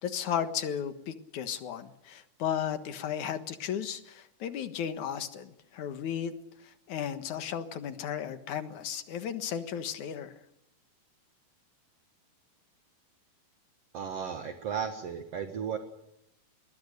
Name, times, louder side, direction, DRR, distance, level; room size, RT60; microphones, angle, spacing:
voice 1, 0.0-6.3 6.9-10.3, left 8 dB, 60° left, 9 dB, 2.6 m, -34 dB
voice 2, 13.9-15.8, right 7 dB, 50° right, 6 dB, 2.3 m, -35 dB
27.5 x 22.0 x 6.7 m, 0.82 s
omnidirectional pair, 4.3 m